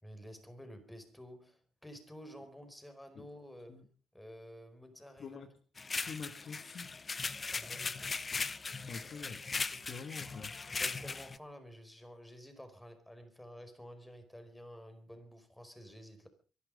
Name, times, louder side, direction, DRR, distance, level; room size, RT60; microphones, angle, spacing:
voice 1, 0.0-3.8 4.1-5.4 7.4-8.2 9.7-10.1 10.7-16.3, equal, 5° left, 8 dB, 4.9 m, -51 dB
voice 2, 5.2-5.5 6.0-6.9 8.8-9.4 9.8-10.5, left 5 dB, 55° left, 9 dB, 1.7 m, -46 dB
sound 1, 5.8-11.4, left 4 dB, 30° left, 0.9 m, -38 dB
24.0 x 11.5 x 5.2 m, 0.39 s
cardioid pair, 90°, 0 cm